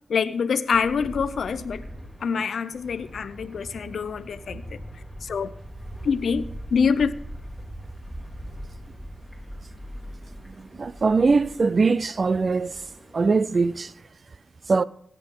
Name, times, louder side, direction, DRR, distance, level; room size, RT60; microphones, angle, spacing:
voice 1, 0.1-1.8 2.2-4.8 5.2-5.5 6.0-6.4 6.7-7.1, left 6 dB, 80° left, 0.7 m, -25 dB
sound 1, 0.7-14.0, equal, 10° right, 5.4 m, -41 dB
voice 2, 10.8-12.7 13.1-13.9 14.7-14.8, right 4 dB, 55° right, 0.4 m, -21 dB
20.0 x 9.2 x 3.7 m
cardioid pair, 55°, 0 cm